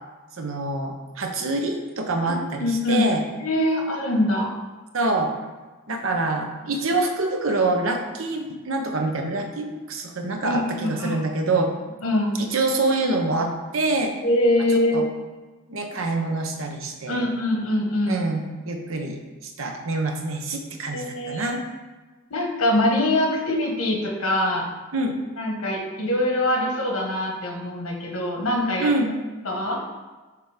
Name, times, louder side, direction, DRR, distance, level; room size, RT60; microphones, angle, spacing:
voice 1, 0.4-3.2 4.9-5.3 5.9-11.7 12.4-14.1 14.9-15.0 15.7-17.2 18.1-21.6 24.9-25.2 28.8-29.1, right 2 dB, 70° right, 4 dB, 0.8 m, -26 dB
voice 2, 2.6-3.1 3.4-4.5 10.4-11.2 12.0-12.4 14.2-15.0 17.1-18.3 20.9-21.6 22.3-24.7 25.4-28.9 29.4-29.8, left 1 dB, 90° left, 1 dB, 1.4 m, -23 dB
6.7 x 3.5 x 4.9 m, 1.3 s
head